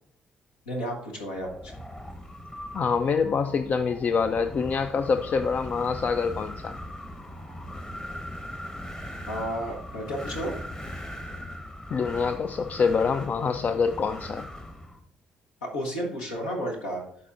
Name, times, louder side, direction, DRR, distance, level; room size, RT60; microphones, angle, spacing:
voice 1, 0.7-1.7 9.3-10.5 15.6-17.0, equal, 75° left, 0 dB, 1.2 m, -32 dB
Wind, 1.4-15.0, left 1 dB, 20° left, 1.2 m, -39 dB
voice 2, 2.7-6.8 11.9-14.5, left 5 dB, 40° left, 8 dB, 0.4 m, -26 dB
12.0 x 4.3 x 2.5 m, 0.67 s
figure-of-eight pair, 45°, 4 cm